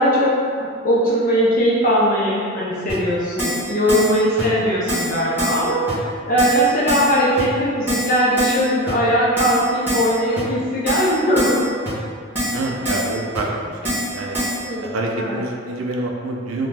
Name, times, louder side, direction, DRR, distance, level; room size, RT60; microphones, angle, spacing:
voice 1, 0.0-11.7 14.6-14.9 15.2-15.4, equal, 40° left, -6 dB, 0.4 m, -19 dB
Keyboard (musical), 2.9-3.0 3.4-3.6 3.9-4.1 4.4-4.5 4.9-5.1 5.4-5.6 5.9-6.0 6.4-6.6 6.9-7.1 7.4-7.5 7.9-8.1 8.4-8.6 8.9-9.0 9.4-9.6 9.9-10.1 10.4-10.5 10.9-11.1 11.4-11.6 11.9-12.0 12.4-12.6 12.9-13.1 13.4-13.5 13.9-14.1 14.3-14.6, equal, 10° right, 0.9 m, -24 dB
voice 2, 12.5-14.4 14.8-16.7, right 2 dB, 80° right, 0 dB, 0.4 m, -26 dB
2.5 x 2.1 x 3.2 m, 2.2 s
head